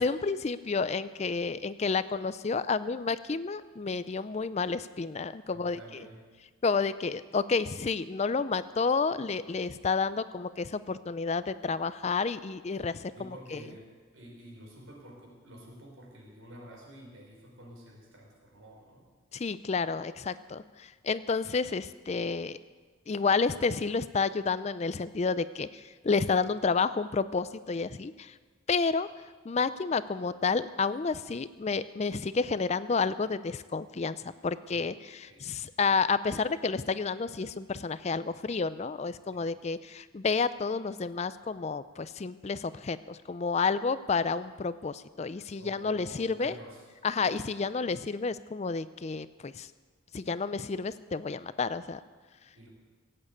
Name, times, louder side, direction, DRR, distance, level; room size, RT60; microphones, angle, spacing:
voice 1, 0.0-5.8 6.6-13.6 19.3-22.6 23.1-28.3 28.7-29.1 29.5-34.2 34.4-46.5 47.0-49.7 50.1-52.0, left 4 dB, 30° left, 15 dB, 0.4 m, -30 dB
voice 2, 5.5-6.2 13.1-13.8 14.1-19.0 34.7-34.9 35.3-35.4 39.3-39.5 45.6-46.8 52.5-52.7, right 1 dB, 80° right, -1 dB, 4.9 m, -49 dB
17.5 x 8.9 x 8.4 m, 1.4 s
head